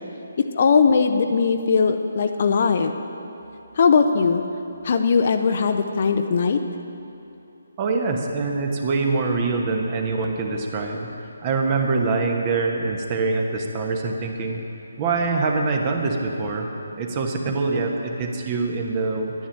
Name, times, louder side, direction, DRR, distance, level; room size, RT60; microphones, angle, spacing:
voice 1, 0.4-3.0 3.8-4.4 4.8-6.6, left 5 dB, 40° left, 7 dB, 0.7 m, -19 dB
voice 2, 7.8-11.1 11.4-14.6 15.0-16.7 16.9-19.3, right 3 dB, 25° right, 2 dB, 1.2 m, -24 dB
11.5 x 10.0 x 7.4 m, 2.9 s
figure-of-eight pair, 145°, 0 cm